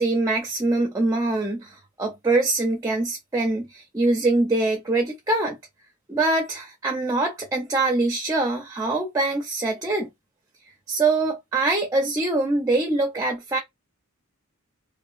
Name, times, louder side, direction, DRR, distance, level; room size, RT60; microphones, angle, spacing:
voice 1, 0.0-5.6 6.1-10.1 10.9-13.6, right 2 dB, 15° right, 0.4 m, -23 dB
2.8 x 2.1 x 2.5 m
head